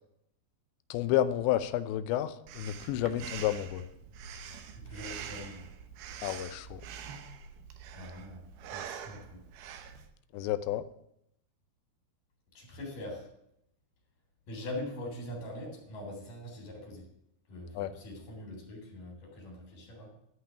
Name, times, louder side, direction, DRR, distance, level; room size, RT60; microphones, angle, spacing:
voice 1, 0.9-3.8 6.2-6.8 10.3-10.8 17.8-17.9, left 12 dB, 80° left, 13 dB, 2.9 m, -30 dB
Breathing, 2.5-10.1, right 7 dB, 70° right, 2.6 m, -45 dB
voice 2, 4.8-5.7 7.9-8.5 8.7-9.4 12.5-13.3 14.5-17.1 17.5-20.1, left 1 dB, 50° left, 0 dB, 5.0 m, -42 dB
13.5 x 5.8 x 9.7 m, 0.79 s
omnidirectional pair, 5.2 m